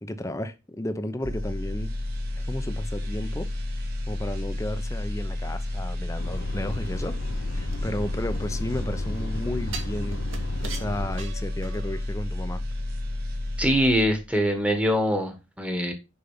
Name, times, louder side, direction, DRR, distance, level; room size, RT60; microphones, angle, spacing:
voice 1, 0.0-1.9 2.4-3.5 4.1-7.2 7.5-10.2 10.6-12.6, left 1 dB, 15° left, 0.7 m, -33 dB
sound 1, 1.2-14.4 14.7-14.9, left 1 dB, 50° right, 2.5 m, -31 dB
sound 2, 6.2-11.2, left 2 dB, 70° left, 0.9 m, -36 dB
sound 3, 7.7-8.9 9.7-12.1 12.5-12.6, right 6 dB, 75° right, 1.9 m, -41 dB
voice 2, 13.6-15.9, equal, 5° right, 1.5 m, -23 dB
6.8 x 5.6 x 5.6 m
head